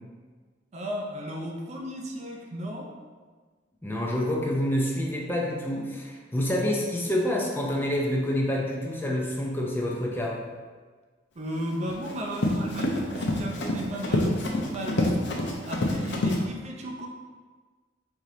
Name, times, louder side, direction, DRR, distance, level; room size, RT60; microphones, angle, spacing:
voice 1, 0.7-3.0 11.4-17.1, equal, 35° right, 0 dB, 0.5 m, -35 dB
voice 2, 3.8-10.4, left 1 dB, 10° left, -2 dB, 0.5 m, -27 dB
Run, 11.6-16.4, left 1 dB, 65° left, 0.7 m, -27 dB
4.8 x 2.8 x 3.8 m, 1.4 s
head